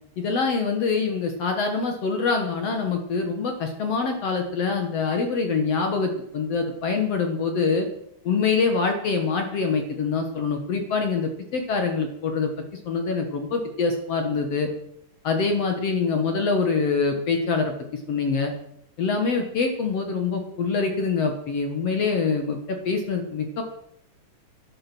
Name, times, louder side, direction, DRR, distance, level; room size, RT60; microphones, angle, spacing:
voice 1, 0.2-7.9 8.2-12.5 12.8-14.7 15.2-18.5 19.0-23.6, left 4 dB, 65° left, 4 dB, 1.6 m, -25 dB
12.5 x 11.0 x 6.1 m, 0.75 s
omnidirectional pair, 5.0 m